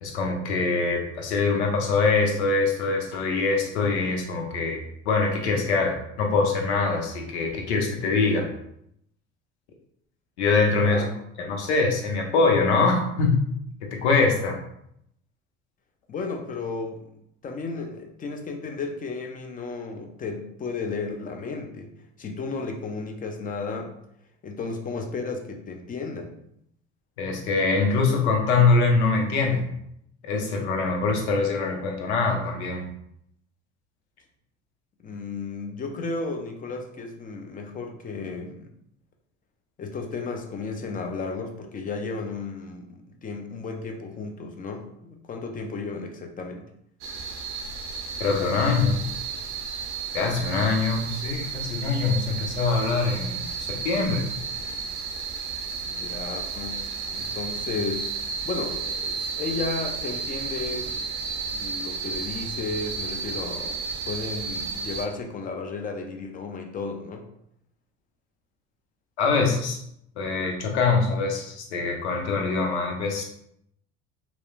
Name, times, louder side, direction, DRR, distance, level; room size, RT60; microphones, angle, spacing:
voice 1, 0.0-4.8 5.1-8.5 10.4-11.0 11.4-13.4 13.8-14.6 27.2-29.6 30.2-32.9 48.2-49.0 50.1-54.3 69.2-69.8 70.2-73.2, left 4 dB, 90° left, 2 dB, 0.6 m, -23 dB
voice 2, 10.7-11.1 16.1-17.1 17.4-21.9 22.2-23.9 24.4-26.3 35.0-38.7 39.8-46.7 55.8-56.8 57.1-58.1 58.4-67.3, left 4 dB, 25° left, 3 dB, 0.5 m, -34 dB
sound 1, 47.0-65.1, right 5 dB, 60° right, 0.5 m, -33 dB
2.9 x 2.0 x 2.4 m, 0.75 s
hypercardioid pair, 75°, 33 cm